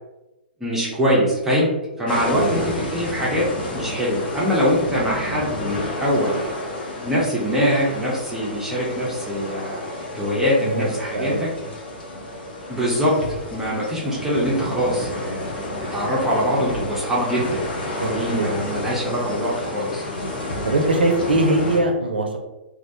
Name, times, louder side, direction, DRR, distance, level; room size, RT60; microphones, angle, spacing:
voice 1, 0.6-1.7 2.0-6.3 7.0-9.9 10.1-11.5 12.7-13.1 13.5-15.5 15.9-17.6 18.1-20.0, equal, 5° right, -6 dB, 0.6 m, -23 dB
sound 1, 2.1-21.8, left 1 dB, 65° left, 0.7 m, -31 dB
voice 2, 10.6-11.5 17.9-18.5 20.6-22.4, right 2 dB, 75° right, 3 dB, 0.4 m, -22 dB
2.3 x 2.1 x 2.7 m, 1.0 s
figure-of-eight pair, 110°, 6 cm